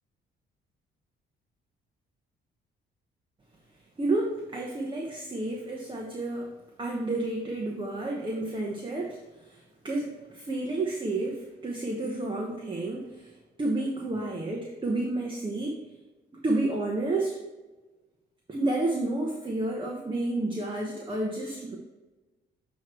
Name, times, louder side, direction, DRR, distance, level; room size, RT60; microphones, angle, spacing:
voice 1, 4.0-6.5 6.8-13.3 13.6-15.8 16.4-17.4 18.5-21.8, right 2 dB, 25° right, -1 dB, 1.1 m, -30 dB
8.1 x 3.1 x 4.6 m, 1.2 s
cardioid pair, 90°, 20 cm